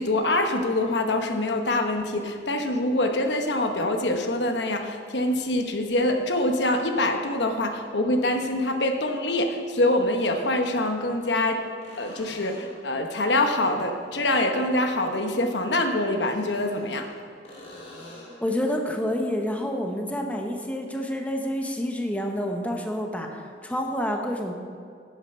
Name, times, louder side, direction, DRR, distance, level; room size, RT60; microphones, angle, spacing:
voice 1, 0.0-11.6 12.0-17.1, left 1 dB, 70° left, 5 dB, 1.0 m, -25 dB
sound 1, 10.0-10.8 11.8-12.9 16.1-17.1 17.4-18.5 22.1-22.2, left 1 dB, 40° left, 3.0 m, -47 dB
voice 2, 18.4-24.5, equal, 10° left, 2 dB, 0.9 m, -28 dB
11.5 x 8.7 x 5.5 m, 2.3 s
head